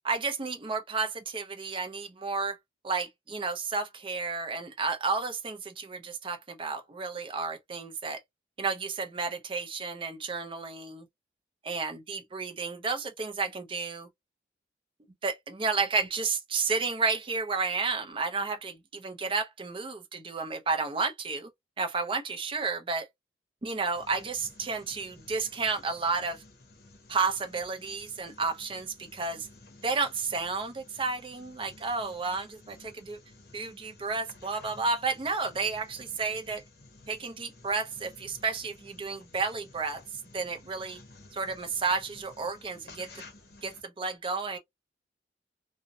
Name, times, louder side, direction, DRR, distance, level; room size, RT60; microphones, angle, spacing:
voice 1, 0.0-2.6 2.8-8.2 8.6-11.1 11.7-14.1 15.2-21.5 21.8-23.1 23.6-26.4 27.1-29.5 29.8-33.2 33.5-36.6 37.1-40.0 40.3-41.0 41.3-43.2 43.6-44.6, right 4 dB, 30° right, 0.5 m, -32 dB
sound 1, 23.9-43.8, left 2 dB, 60° left, 0.8 m, -54 dB
2.5 x 2.1 x 2.6 m
head